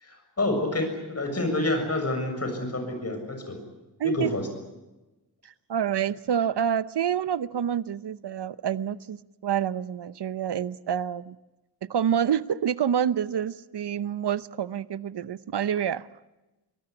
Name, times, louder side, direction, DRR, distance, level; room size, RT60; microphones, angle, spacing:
voice 1, 0.0-3.6 4.0-4.4, left 2 dB, 40° left, 5 dB, 7.0 m, -28 dB
voice 2, 5.7-11.4 11.9-16.1, right 9 dB, 85° right, 17 dB, 0.8 m, -27 dB
23.5 x 19.5 x 9.8 m, 1.0 s
wide cardioid pair, 135°, 40 cm